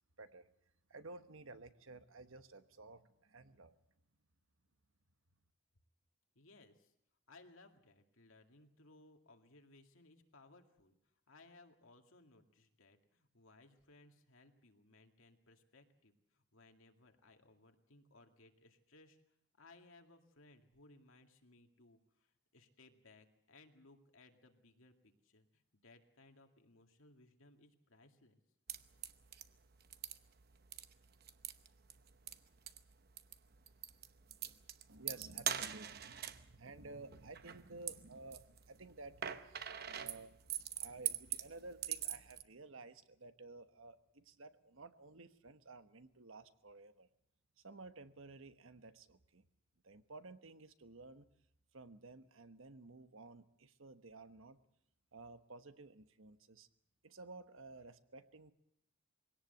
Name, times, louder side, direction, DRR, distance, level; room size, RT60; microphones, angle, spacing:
voice 1, 0.9-3.8 34.9-47.1 47.6-49.4 49.8-51.3 51.7-54.6 55.1-56.7 57.0-58.5, right 3 dB, 75° right, 10 dB, 1.2 m, -54 dB
voice 2, 6.4-6.9 7.3-19.2 19.5-28.4, left 2 dB, 75° left, 4 dB, 2.2 m, -64 dB
sound 1, 28.7-42.4, right 10 dB, 50° right, 0.9 m, -45 dB
22.5 x 17.5 x 8.0 m, 0.76 s
head